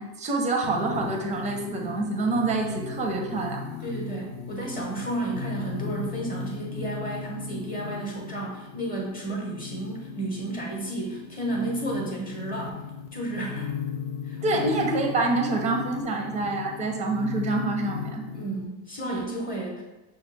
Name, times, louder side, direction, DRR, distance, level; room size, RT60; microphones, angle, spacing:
voice 1, 0.0-3.6 14.4-18.2, right 2 dB, 15° right, 2 dB, 0.5 m, -26 dB
sound 1, 0.6-18.6, left 5 dB, 45° left, 0.5 m, -37 dB
voice 2, 3.8-12.8 13.1-13.7 14.2-14.7 18.3-19.8, right 2 dB, 20° left, -2 dB, 0.8 m, -32 dB
6.0 x 2.3 x 3.2 m, 1.1 s
cardioid pair, 145°, 43 cm